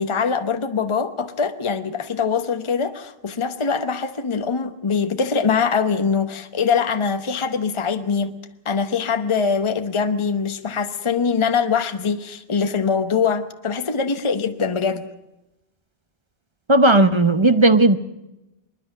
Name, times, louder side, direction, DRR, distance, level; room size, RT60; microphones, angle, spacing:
voice 1, 0.0-8.4 8.6-15.1, left 5 dB, 30° left, 9 dB, 1.0 m, -23 dB
voice 2, 16.7-18.0, right 2 dB, 30° right, 11 dB, 0.8 m, -15 dB
26.0 x 10.5 x 9.8 m, 0.94 s
omnidirectional pair, 1.1 m